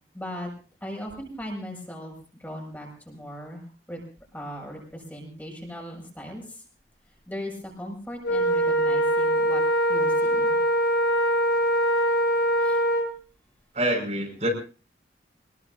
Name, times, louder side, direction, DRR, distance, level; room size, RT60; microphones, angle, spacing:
voice 1, 0.1-0.5 0.8-2.1 2.4-3.6 3.9-4.0 4.3-6.4 7.3-7.5 7.8-9.6 9.9-10.6 12.6-12.8, equal, 10° left, -1 dB, 6.3 m, -38 dB
Wind instrument woodwind instrument, 8.2-13.1, equal, 70° left, 7.3 m, -22 dB
voice 2, 13.7-14.5, right 1 dB, 40° right, 1 dB, 5.6 m, -26 dB
24.5 x 21.0 x 2.7 m, 0.37 s
head